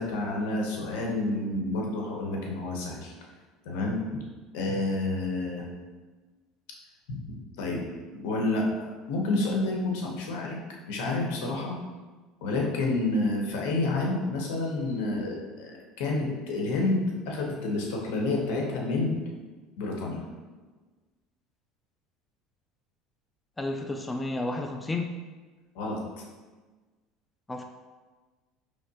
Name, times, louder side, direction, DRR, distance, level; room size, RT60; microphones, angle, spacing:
voice 1, 0.0-3.1 3.6-4.2 4.5-5.6 7.6-7.8 8.1-10.6 10.9-11.8 12.4-19.2 19.8-20.2 25.7-26.2, left 2 dB, 80° left, 0 dB, 0.9 m, -29 dB
voice 2, 23.6-25.2 27.5-27.6, left 2 dB, 15° left, 4 dB, 0.3 m, -31 dB
4.9 x 3.1 x 2.8 m, 1.3 s
supercardioid pair, 110°, 0 cm